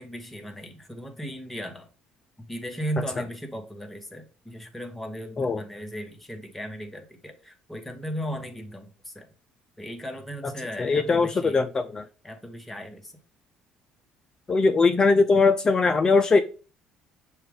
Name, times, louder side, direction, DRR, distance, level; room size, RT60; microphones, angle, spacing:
voice 1, 0.0-1.9 2.4-9.3 9.8-11.6 12.2-13.1, equal, 10° left, 4 dB, 1.0 m, -36 dB
voice 2, 10.8-12.1 14.5-16.4, left 4 dB, 30° left, 6 dB, 0.4 m, -20 dB
6.5 x 2.3 x 3.3 m, 0.36 s
supercardioid pair, 85°, 2 cm